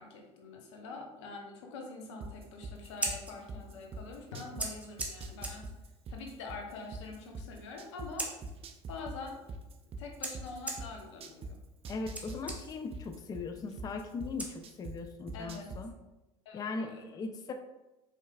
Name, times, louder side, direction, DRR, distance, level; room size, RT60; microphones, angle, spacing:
voice 1, 0.0-5.6 6.1-8.4 8.9-9.4 10.0-11.6 15.3-15.7 16.4-17.0, left 3 dB, 80° left, 2 dB, 0.8 m, -45 dB
sound 1, 2.2-4.7 5.0-8.1 8.4-11.5 11.8-14.9 15.3-15.8, right 3 dB, 40° right, 0.5 m, -42 dB
Scissors, 2.8-15.1, right 2 dB, 10° right, 0.9 m, -44 dB
voice 2, 11.9-15.9 16.5-17.5, left 4 dB, 25° left, 7 dB, 0.3 m, -39 dB
4.6 x 3.2 x 2.3 m, 1.0 s
hypercardioid pair, 75°, 15 cm